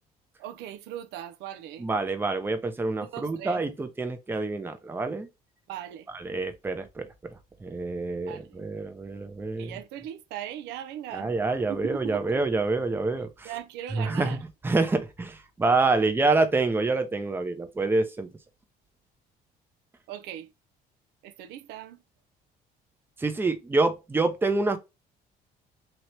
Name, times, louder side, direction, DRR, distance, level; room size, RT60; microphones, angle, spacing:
voice 1, 0.4-1.9 3.0-3.6 5.7-6.1 8.3-8.6 9.6-11.3 11.7-12.4 13.4-14.4 20.1-20.5 21.2-22.0, right 11 dB, 85° right, 0.4 m, -39 dB
voice 2, 1.8-5.3 6.1-7.1 7.6-9.7 11.1-13.5 13.9-14.4 14.6-18.3 23.2-24.8, right 3 dB, 15° right, 0.5 m, -27 dB
2.9 x 2.8 x 3.1 m
cardioid pair, 110°, 17 cm